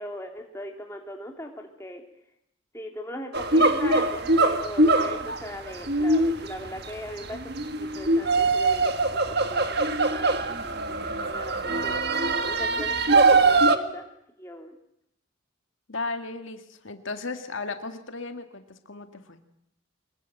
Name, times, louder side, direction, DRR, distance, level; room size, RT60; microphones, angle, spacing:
voice 1, 0.0-2.0 2.7-7.4 7.8-9.2 9.5-10.8 11.2-11.6 11.8-14.0 14.4-14.8, left 1 dB, 15° left, 2 dB, 3.1 m, -39 dB
sound 1, 3.3-13.8, right 2 dB, 50° right, 1.7 m, -22 dB
voice 2, 15.9-19.4, left 3 dB, 70° left, 7 dB, 2.0 m, -35 dB
25.0 x 22.0 x 9.1 m, 0.76 s
head